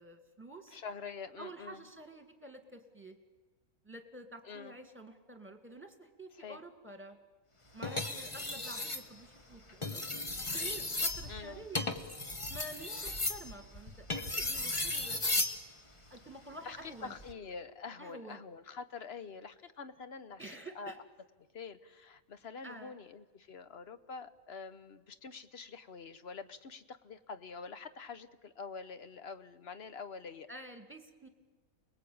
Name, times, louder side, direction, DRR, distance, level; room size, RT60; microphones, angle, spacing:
voice 1, 0.0-0.8 1.4-3.2 3.8-7.2 7.7-10.2 10.5-11.9 12.5-15.2 16.1-17.1 18.0-18.4 20.4-21.0 22.6-23.0 30.5-31.3, right 1 dB, 10° right, 5 dB, 2.2 m, -49 dB
voice 2, 0.7-1.8 4.4-4.7 6.3-6.6 11.3-11.7 16.6-20.4 20.7-20.9 21.5-30.5, left 5 dB, 45° left, 11 dB, 1.2 m, -46 dB
sound 1, 7.8-9.1 9.7-15.6 17.0-17.3, left 2 dB, 20° left, 1.2 m, -35 dB
29.0 x 20.5 x 8.7 m, 1.3 s
omnidirectional pair, 1.6 m